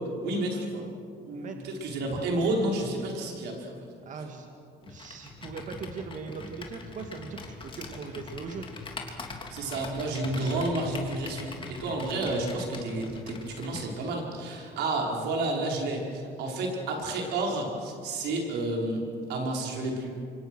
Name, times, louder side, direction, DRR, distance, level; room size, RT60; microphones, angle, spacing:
voice 1, 0.2-0.9 1.2-3.8 9.5-19.0 19.3-20.1, right 2 dB, 85° right, 0 dB, 5.3 m, -30 dB
voice 2, 1.3-1.7 4.1-4.5 4.8-8.7, right 5 dB, 50° right, 4 dB, 2.3 m, -40 dB
Computer keyboard, 4.8-13.9, left 3 dB, 30° left, 3.1 m, -42 dB
27.0 x 24.5 x 6.5 m, 2.5 s
cardioid pair, 110°, 17 cm